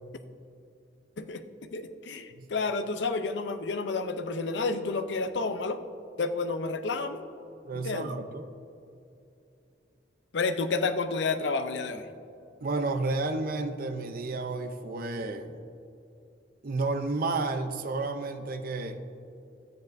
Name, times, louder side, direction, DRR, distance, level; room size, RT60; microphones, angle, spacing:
voice 1, 1.2-5.8 6.2-7.3 7.7-8.1 10.3-12.1, left 3 dB, 75° left, 9 dB, 0.6 m, -30 dB
voice 2, 7.6-8.5 12.6-15.6 16.6-19.0, right 3 dB, 55° right, 6 dB, 0.5 m, -31 dB
13.0 x 9.5 x 2.6 m, 2.6 s
head